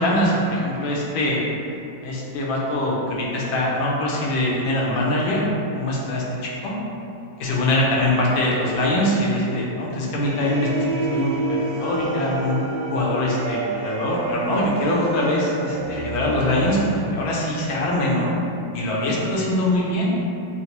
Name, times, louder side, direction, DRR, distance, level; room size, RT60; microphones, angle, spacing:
voice 1, 0.0-1.4 2.0-6.8 7.4-12.6 12.9-18.3 18.7-20.1, left 1 dB, 80° left, -3 dB, 1.4 m, -23 dB
sound 1, 10.2-17.2, right 3 dB, 75° right, 1.0 m, -29 dB
4.0 x 2.0 x 2.8 m, 2.6 s
omnidirectional pair, 2.2 m